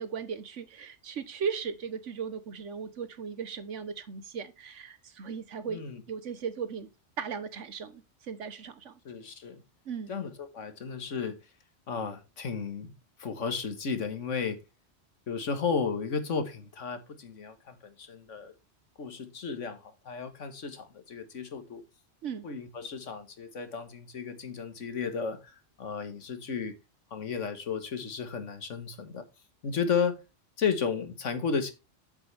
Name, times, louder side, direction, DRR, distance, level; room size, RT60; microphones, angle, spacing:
voice 1, 0.0-6.9 7.2-9.0 9.8-10.2 22.2-22.5, right 6 dB, 80° right, 1.4 m, -37 dB
voice 2, 5.7-6.0 9.1-9.6 10.1-11.4 11.9-12.9 13.2-14.6 15.3-18.5 19.0-21.8 22.4-26.7 27.1-29.3 29.6-30.2 30.6-31.7, left 6 dB, 90° left, 1.8 m, -33 dB
8.0 x 7.7 x 3.4 m
omnidirectional pair, 1.2 m